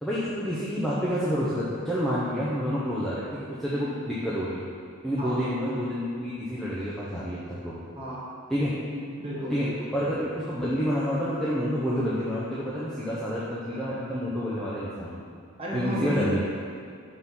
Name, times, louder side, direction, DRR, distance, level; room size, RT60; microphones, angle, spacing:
voice 1, 0.0-4.6 5.0-7.8 8.5-8.7 9.5-9.7 9.9-15.2 15.7-16.4, equal, ahead, -10 dB, 0.7 m, -28 dB
voice 2, 8.9-9.9 15.6-16.4, equal, 25° right, -6 dB, 1.3 m, -32 dB
6.3 x 3.7 x 5.6 m, 2.3 s
head